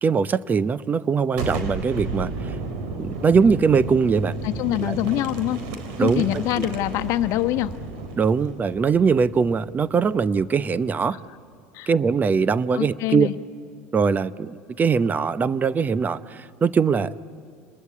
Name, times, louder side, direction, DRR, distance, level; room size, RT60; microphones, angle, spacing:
voice 1, 0.0-2.6 3.0-4.4 4.8-5.0 6.0-6.3 6.6-6.7 8.2-11.2 11.9-13.3 13.9-17.3, right 5 dB, 30° right, 16 dB, 0.8 m, -21 dB
Boom, 1.3-10.9, right 3 dB, 70° right, 3.9 m, -33 dB
voice 2, 4.4-5.6 6.0-7.7 11.1-11.2 11.7-11.9 12.7-13.3, left 15 dB, 60° left, 9 dB, 1.1 m, -24 dB
28.5 x 21.5 x 8.7 m, 2.4 s
hypercardioid pair, 85°, 6 cm